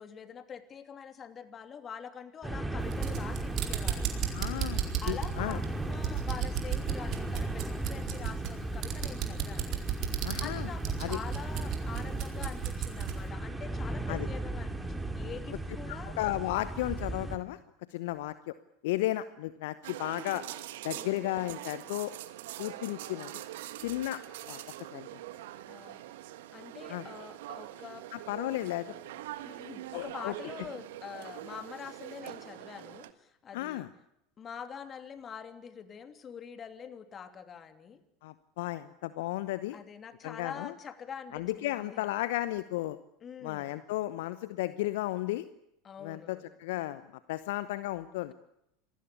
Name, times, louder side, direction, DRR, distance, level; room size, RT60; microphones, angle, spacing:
voice 1, 0.0-4.3 5.0-9.8 10.4-16.1 20.9-21.2 25.7-26.0 26.5-28.0 29.4-33.9 34.4-38.0 39.7-42.1 43.2-43.8 45.8-46.6, left 7 dB, 30° left, 8 dB, 2.9 m, -45 dB
sound 1, 2.4-17.4, right 2 dB, 5° right, 3.0 m, -36 dB
sound 2, 2.8-13.2, right 11 dB, 45° right, 4.4 m, -35 dB
voice 2, 4.3-5.6 10.2-10.7 11.0-11.2 14.1-14.3 15.9-17.6 17.9-18.5 18.8-20.4 20.8-22.1 22.6-23.3 23.8-24.2 24.5-24.6 24.9-25.1 26.9-27.0 28.1-28.9 29.9-30.3 33.5-33.9 38.2-39.8 40.2-40.7 41.3-43.0 43.4-45.5 46.0-47.0 47.3-48.3, left 16 dB, 65° left, 14 dB, 0.9 m, -34 dB
sound 3, 19.8-33.1, right 14 dB, 65° right, 1.5 m, -44 dB
26.5 x 20.0 x 8.4 m, 0.80 s
figure-of-eight pair, 80°, 0 cm